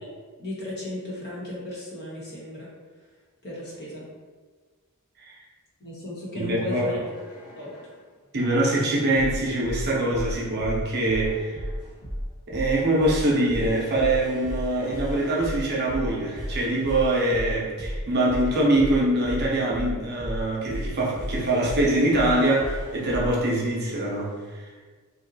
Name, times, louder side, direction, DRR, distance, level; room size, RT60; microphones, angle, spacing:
voice 1, 0.4-2.7 3.4-4.1 5.8-7.0 7.6-7.7, left 1 dB, 50° left, -6 dB, 1.1 m, -35 dB
voice 2, 6.4-6.8 8.3-11.6 12.5-24.6, right 1 dB, 50° right, -3 dB, 0.6 m, -24 dB
sound 1, 7.0-8.0 8.7-23.4 24.0-24.4, equal, 80° left, 1.3 m, -34 dB
2.7 x 2.2 x 3.9 m, 1.4 s
head